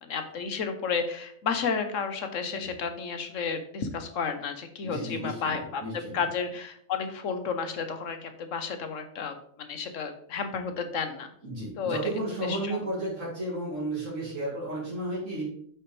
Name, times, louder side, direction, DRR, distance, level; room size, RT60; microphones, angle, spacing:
voice 1, 0.0-11.3 11.8-12.0 12.5-12.8, left 5 dB, 85° left, 8 dB, 1.3 m, -32 dB
voice 2, 4.8-6.2 11.4-15.4, right 1 dB, 85° right, -7 dB, 3.2 m, -33 dB
8.5 x 5.9 x 3.2 m, 0.63 s
omnidirectional pair, 1.3 m